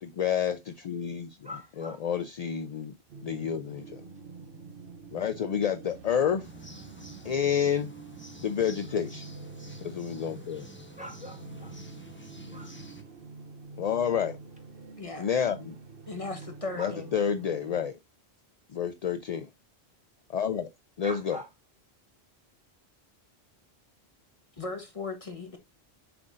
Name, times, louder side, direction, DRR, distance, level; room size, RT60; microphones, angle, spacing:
voice 1, 0.0-1.4 1.8-2.9 3.2-4.0 5.1-6.5 7.2-7.9 8.4-9.3 9.8-10.7 13.8-14.4 15.2-15.7 16.8-17.9 18.7-19.5 20.3-20.7 21.0-21.4, left 8 dB, 50° left, 0.5 m, -29 dB
voice 2, 1.4-2.0 11.0-11.8 12.5-12.7 16.8-16.9 17.4-17.5 21.0-21.5, left 1 dB, 5° right, 1.6 m, -43 dB
sound 1, 3.1-17.8, right 4 dB, 60° right, 1.0 m, -46 dB
sound 2, 6.4-13.0, equal, 10° left, 1.1 m, -49 dB
voice 3, 16.1-17.1 24.6-25.6, left 3 dB, 35° left, 1.2 m, -37 dB
7.7 x 5.8 x 2.5 m
omnidirectional pair, 1.1 m